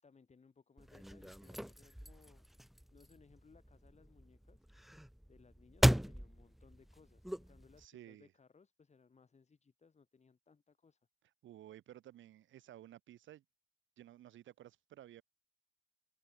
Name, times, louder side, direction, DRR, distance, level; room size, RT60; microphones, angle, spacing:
voice 1, 0.0-2.4 2.9-4.7 5.3-11.1, left 5 dB, 35° left, 6.8 m, -65 dB
sound 1, 0.8-7.9, equal, ahead, 0.4 m, -37 dB
voice 2, 7.8-8.3 11.4-13.4 14.0-15.2, right 12 dB, 75° right, 1.5 m, -55 dB
cardioid pair, 90°, 20 cm